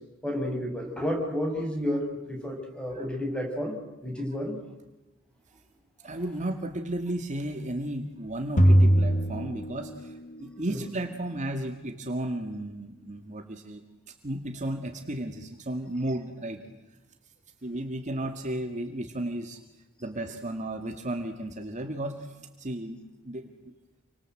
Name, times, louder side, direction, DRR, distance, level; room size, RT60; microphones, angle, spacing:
voice 1, 0.2-3.8 4.0-4.6 10.7-10.8, equal, 5° left, 3 dB, 6.1 m, -31 dB
voice 2, 6.0-13.8 14.2-16.6 17.6-19.6 20.0-23.0 23.2-23.7, right 1 dB, 35° right, 5 dB, 2.1 m, -34 dB
sound 1, 8.6-10.4, equal, 40° left, 1.6 m, -21 dB
29.0 x 25.0 x 7.9 m, 1.1 s
head